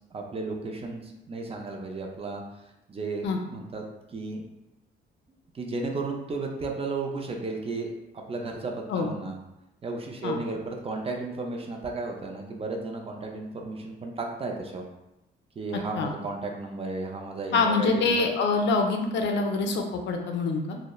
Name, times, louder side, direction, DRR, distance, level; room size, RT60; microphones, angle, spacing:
voice 1, 0.1-2.4 2.9-3.8 4.1-4.4 5.5-7.9 8.3-9.4 9.8-14.8 15.6-18.1, right 3 dB, 30° right, 2 dB, 0.4 m, -34 dB
voice 2, 17.5-20.8, left 4 dB, 65° left, 3 dB, 0.4 m, -25 dB
2.8 x 2.0 x 2.2 m, 0.93 s
cardioid pair, 90°, 20 cm